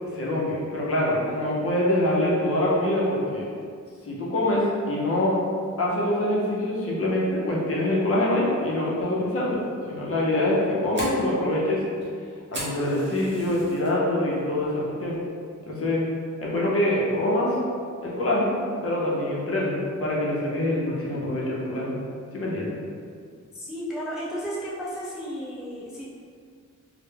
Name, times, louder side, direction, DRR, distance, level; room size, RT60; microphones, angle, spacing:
voice 1, 0.1-3.5 4.0-5.4 5.8-11.8 12.5-15.2 15.7-16.0 16.4-17.6 18.0-18.6 18.8-22.0 22.3-22.8, left 1 dB, 45° left, -5 dB, 0.6 m, -25 dB
Fire, 10.4-13.9 14.3-14.7 15.1-15.2 15.8-16.1, right 1 dB, 35° right, 0.7 m, -38 dB
voice 2, 23.5-26.0, equal, ahead, -7 dB, 0.4 m, -33 dB
2.1 x 2.0 x 3.2 m, 2.2 s
wide cardioid pair, 120°, 31 cm